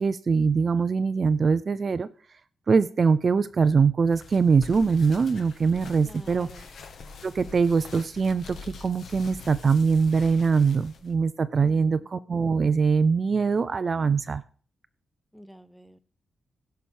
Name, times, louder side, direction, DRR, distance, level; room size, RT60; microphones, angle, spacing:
voice 1, 0.0-2.1 2.7-6.5 7.2-14.4, right 5 dB, 35° right, 13 dB, 0.5 m, -23 dB
sound 1, 4.1-11.1, left 4 dB, 65° left, 1.6 m, -45 dB
voice 2, 6.1-6.6 11.6-12.0 15.3-16.0, equal, ahead, 11 dB, 0.7 m, -47 dB
16.5 x 5.8 x 6.4 m, 0.41 s
wide cardioid pair, 160°, 0 cm